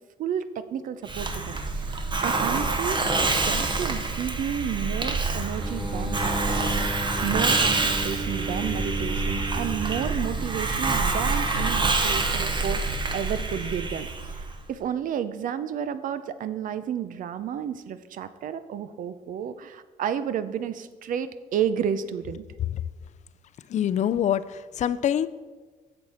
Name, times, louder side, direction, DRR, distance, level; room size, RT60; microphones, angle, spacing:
voice 1, 0.2-3.0 3.4-6.9 7.2-12.8 13.1-22.4, right 8 dB, 70° right, 13 dB, 0.5 m, -31 dB
Hiss, 1.1-14.6, right 3 dB, 35° right, 1.0 m, -26 dB
sound 1, 5.6-10.9, right 1 dB, 5° right, 0.8 m, -34 dB
voice 2, 23.7-25.3, left 10 dB, 55° left, 15 dB, 0.4 m, -25 dB
7.8 x 7.0 x 4.2 m, 1.3 s
cardioid pair, 90°, 14 cm